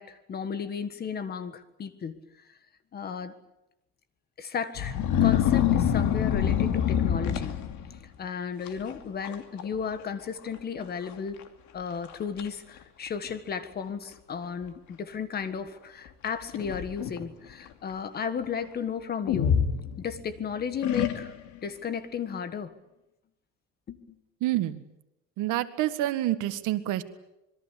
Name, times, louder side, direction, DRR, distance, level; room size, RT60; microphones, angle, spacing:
voice 1, 0.0-2.2 2.9-3.4 4.4-7.6 8.2-11.4 11.7-19.6 20.0-21.3 21.6-22.7 23.9-24.2, left 6 dB, 30° left, 11 dB, 1.7 m, -34 dB
sound 1, 4.8-8.0 8.7-8.9 9.2-9.7 9.9-10.0 10.8-10.9 11.4-11.5 12.0-12.5 13.3-13.4 16.2-17.2 19.3-20.3 20.8-21.6, left 9 dB, 70° left, 2.6 m, -26 dB
voice 2, 24.4-24.8 25.4-27.0, right 14 dB, 85° right, 10 dB, 1.9 m, -27 dB
26.5 x 22.0 x 8.4 m, 0.88 s
cardioid pair, 175°, 30 cm